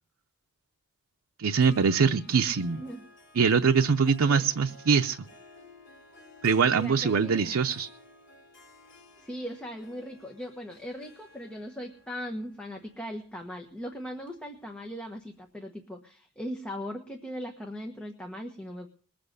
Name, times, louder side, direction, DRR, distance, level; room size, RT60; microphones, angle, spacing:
voice 1, 1.4-2.8 3.3-5.2 6.4-7.9, right 5 dB, 90° right, 0.6 m, -23 dB
Harp, 1.6-15.1, left 2 dB, 55° left, 3.5 m, -54 dB
voice 2, 2.6-3.0 4.0-4.5 6.7-7.5 9.2-18.9, equal, 5° left, 1.3 m, -39 dB
21.0 x 7.7 x 6.5 m
head